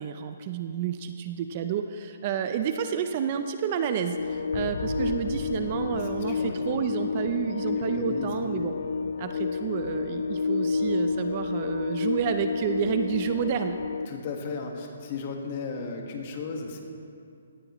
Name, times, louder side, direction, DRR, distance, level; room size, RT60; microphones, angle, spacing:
voice 1, 0.0-8.7 9.2-13.8, right 8 dB, 30° right, 8 dB, 0.5 m, -30 dB
sound 1, 4.1-14.1, left 4 dB, 70° left, 0.4 m, -30 dB
sound 2, 4.5-7.6 7.8-8.0 8.5-8.6 13.2-13.3, left 1 dB, 50° left, 2.5 m, -39 dB
voice 2, 6.3-6.9 7.8-8.4 14.1-16.8, left 4 dB, 35° left, 2 dB, 1.5 m, -35 dB
18.0 x 13.5 x 3.1 m, 2.4 s
hypercardioid pair, 165°, 0 cm